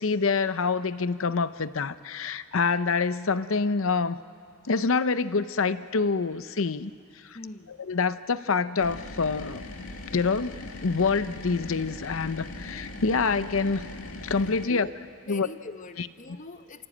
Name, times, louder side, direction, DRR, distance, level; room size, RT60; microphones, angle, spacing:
voice 1, 0.0-4.2 4.7-6.9 7.2-7.4 7.7-9.6 10.1-10.5 10.8-13.9 14.2-14.9 15.3-15.5 16.0-16.1, left 4 dB, 65° left, 14 dB, 0.7 m, -26 dB
voice 2, 7.3-7.7 14.7-14.9 15.2-16.9, left 3 dB, 35° left, 10 dB, 0.9 m, -42 dB
sound 1, 8.8-14.7, left 2 dB, 85° left, 1.9 m, -40 dB
29.5 x 16.0 x 8.7 m, 2.2 s
head